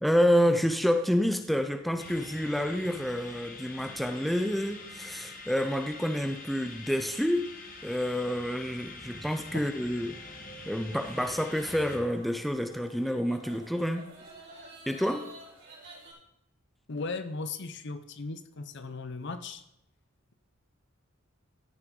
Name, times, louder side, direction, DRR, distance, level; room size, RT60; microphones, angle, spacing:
voice 1, 0.0-7.4 7.8-10.2 10.7-14.1 14.9-15.3, equal, ahead, 6 dB, 0.5 m, -28 dB
sound 1, 2.0-12.0, left 3 dB, 40° left, 1.3 m, -45 dB
sound 2, 10.9-16.1, right 1 dB, 55° right, 4.6 m, -51 dB
voice 2, 16.9-19.6, left 3 dB, 55° left, 11 dB, 0.7 m, -37 dB
14.0 x 6.4 x 3.8 m, 0.81 s
head